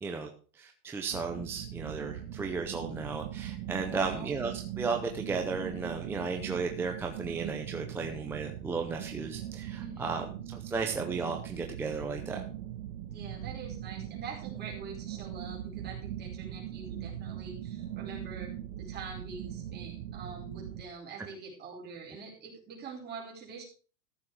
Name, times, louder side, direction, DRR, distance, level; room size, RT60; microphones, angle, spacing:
voice 1, 0.0-10.3 10.5-12.4, right 4 dB, 5° right, 2 dB, 0.5 m, -34 dB
sound 1, 1.1-20.8, right 11 dB, 60° right, 1.5 m, -40 dB
voice 2, 3.9-4.4 9.8-10.2 13.1-18.5 18.8-23.6, right 4 dB, 20° right, -2 dB, 4.7 m, -45 dB
14.0 x 7.1 x 4.8 m, 0.39 s
supercardioid pair, 160°, 43 cm